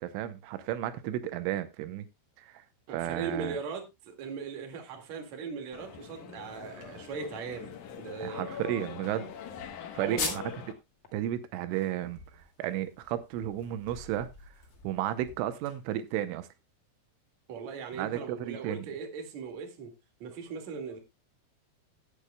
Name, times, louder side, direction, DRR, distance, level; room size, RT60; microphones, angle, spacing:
voice 1, 0.0-2.0 2.4-2.6 2.9-3.6 8.2-9.3 9.9-10.4 11.1-12.2 12.6-14.3 14.8-16.5 18.0-18.9, right 12 dB, 85° right, 3.3 m, -33 dB
voice 2, 2.9-8.5 10.0-10.4 17.5-19.9 20.2-21.0, right 5 dB, 45° right, 2.7 m, -39 dB
sound 1, 5.7-10.7, left 7 dB, 80° left, 1.7 m, -43 dB
sound 2, 10.2-10.7 11.0-11.1 11.5-16.2, left 4 dB, 35° left, 2.0 m, -41 dB
18.0 x 8.3 x 2.3 m
omnidirectional pair, 5.5 m